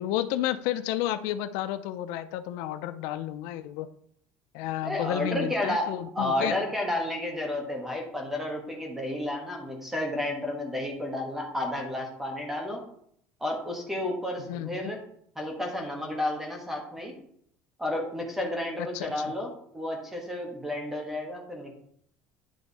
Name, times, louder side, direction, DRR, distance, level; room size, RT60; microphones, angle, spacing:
voice 1, 0.0-3.9 4.5-6.6 14.4-14.9 18.8-19.3, left 12 dB, 80° left, 11 dB, 0.5 m, -31 dB
voice 2, 4.8-5.9 6.1-12.8 13.4-15.0 15.3-17.1 17.8-19.5 19.7-21.7, left 1 dB, 5° right, 1 dB, 1.4 m, -31 dB
10.0 x 3.4 x 4.1 m, 0.68 s
cardioid pair, 135°, 6 cm